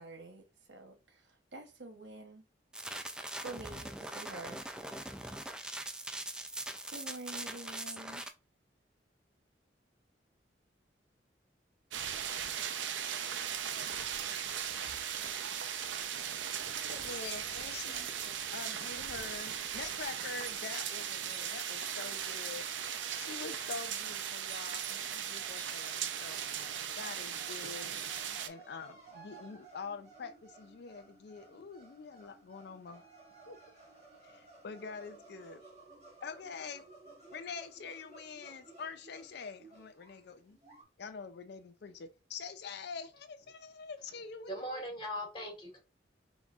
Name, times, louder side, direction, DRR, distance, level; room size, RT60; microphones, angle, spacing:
voice 1, 0.0-2.4 3.4-4.6 6.9-8.2, right 2 dB, 75° right, 1.0 m, -47 dB
sound 1, 2.7-8.3, right 1 dB, 5° right, 0.3 m, -42 dB
sound 2, 11.9-28.5, right 8 dB, 90° right, 0.5 m, -38 dB
voice 2, 16.9-18.1 18.5-22.7 23.2-26.4 26.9-27.9 28.4-33.0 33.5-33.6 34.2-35.6 36.2-36.8 37.3-40.6 41.0-44.8, left 5 dB, 65° left, 0.4 m, -45 dB
sound 3, 21.0-40.8, right 3 dB, 35° right, 1.6 m, -58 dB
voice 3, 44.5-45.8, equal, 30° left, 1.6 m, -40 dB
5.2 x 3.1 x 2.4 m
head